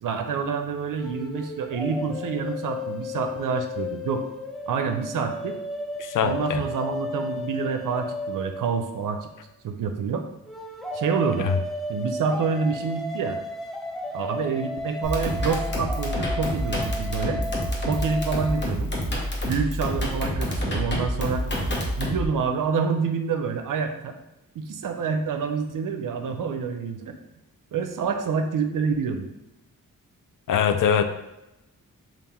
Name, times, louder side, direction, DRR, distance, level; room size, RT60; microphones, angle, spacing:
voice 1, 0.0-4.3 4.7-5.6 6.2-9.3 9.6-10.2 10.9-11.5 11.9-13.4 14.1-17.4 17.9-18.9 19.4-21.4 22.0-24.1 24.6-27.2 27.7-29.3, right 5 dB, 65° right, 6 dB, 0.6 m, -27 dB
sound 1, 1.0-9.3 10.5-18.7, left 2 dB, ahead, 0.5 m, -34 dB
voice 2, 6.0-6.6 11.4-11.5 30.5-31.0, left 8 dB, 60° left, 8 dB, 0.5 m, -22 dB
sound 2, 15.0-22.3, equal, 30° left, 1.1 m, -28 dB
3.5 x 2.5 x 4.2 m, 0.93 s
cardioid pair, 60°, 35 cm